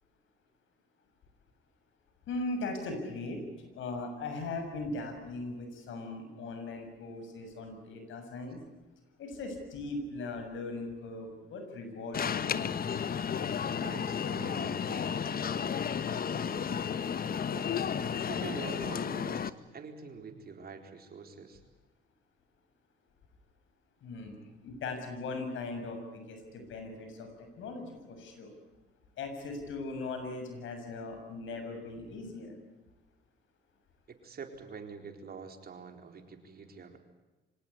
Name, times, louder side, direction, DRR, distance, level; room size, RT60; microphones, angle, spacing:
voice 1, 2.3-3.4 3.8-8.6 9.2-12.6 24.0-28.5 29.2-32.5, left 3 dB, 75° left, 6 dB, 6.9 m, -39 dB
Alarm, 12.1-19.5, left 7 dB, 50° left, 1.2 m, -33 dB
voice 2, 13.8-17.1 17.5-21.6 34.1-37.0, right 5 dB, 50° right, 5 dB, 4.2 m, -46 dB
25.5 x 18.5 x 9.7 m, 1.1 s
cardioid pair, 90°, 20 cm